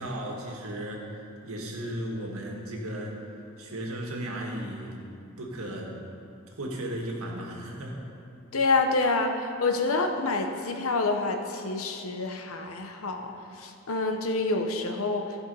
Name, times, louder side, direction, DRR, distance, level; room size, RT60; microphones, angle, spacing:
voice 1, 0.0-3.2 3.6-4.9 5.4-5.9 6.5-8.0, right 1 dB, 85° right, -1 dB, 1.7 m, -35 dB
voice 2, 8.5-13.3 13.6-15.3, left 3 dB, 80° left, 5 dB, 0.9 m, -27 dB
14.5 x 5.4 x 5.4 m, 2.6 s
head